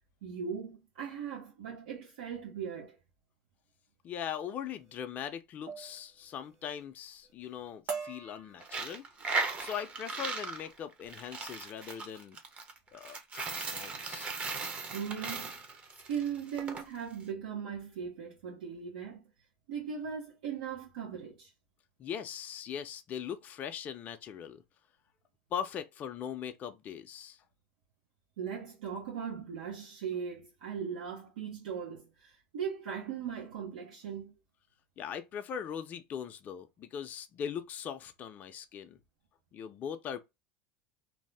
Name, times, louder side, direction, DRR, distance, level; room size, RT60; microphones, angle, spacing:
voice 1, 0.2-3.0 14.9-15.5 16.1-19.2 19.7-21.5 28.4-34.3, right 7 dB, 85° right, 0.8 m, -39 dB
voice 2, 4.0-9.0 9.6-12.4 12.9-14.3 22.0-24.6 25.5-27.4 35.0-39.0 39.5-40.2, left 8 dB, 40° left, 0.4 m, -40 dB
sound 1, 4.7-5.0 5.7-6.0 6.3-6.8 7.2-7.5 7.9-9.2 9.8-10.0 10.4-10.8, right 5 dB, 50° right, 0.9 m, -43 dB
Coin (dropping), 8.6-16.8, right 3 dB, 30° right, 0.7 m, -37 dB
2.7 x 2.1 x 3.3 m
supercardioid pair, 110°, 4 cm